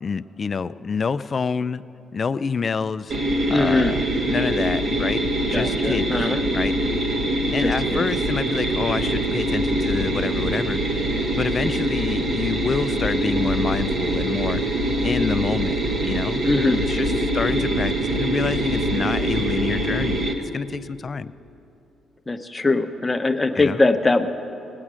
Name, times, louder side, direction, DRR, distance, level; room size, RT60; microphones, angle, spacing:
voice 1, 0.0-1.8 2.1-3.2 3.5-4.0 4.3-6.2 6.5-6.8 7.5-11.1 11.4-16.4 16.8-21.3 23.6-23.8, left 5 dB, 40° left, 14 dB, 0.3 m, -28 dB
sound 1, 3.1-20.3, right 1 dB, 45° right, 1.3 m, -23 dB
voice 2, 3.5-3.9 5.5-6.4 7.6-8.0 16.4-16.9 22.3-24.3, left 3 dB, 20° left, 7 dB, 0.8 m, -21 dB
19.0 x 8.6 x 6.2 m, 2.8 s
cardioid pair, 90°, 0 cm